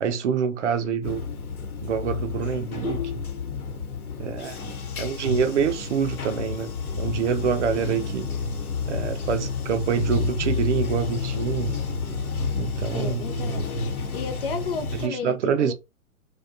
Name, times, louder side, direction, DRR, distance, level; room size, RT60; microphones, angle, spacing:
voice 1, 0.0-1.2 1.8-3.3 4.2-8.3 8.9-11.8 12.6-13.3 14.9-15.7, right 7 dB, 55° right, 0.5 m, -26 dB
Bathtub (filling or washing), 1.0-15.1, left 4 dB, 80° left, 0.9 m, -30 dB
voice 2, 12.9-15.7, left 5 dB, 45° left, 0.4 m, -33 dB
2.4 x 2.2 x 2.4 m
hypercardioid pair, 125°, 43 cm